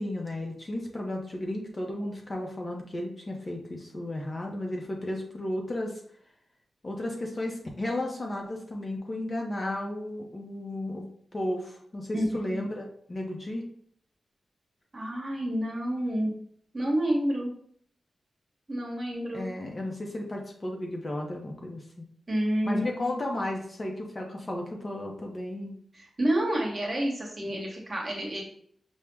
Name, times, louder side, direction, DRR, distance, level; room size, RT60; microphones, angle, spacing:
voice 1, 0.0-6.0 6.8-11.0 11.3-13.6 19.3-22.1 22.7-25.7 27.5-27.6, left 1 dB, 25° left, 0 dB, 0.5 m, -34 dB
voice 2, 12.1-12.6 14.9-16.3 16.7-17.5 18.7-19.5 22.3-23.2 25.9-28.4, right 1 dB, 25° right, -2 dB, 1.1 m, -29 dB
5.7 x 2.0 x 3.3 m, 0.62 s
wide cardioid pair, 180°, 0 cm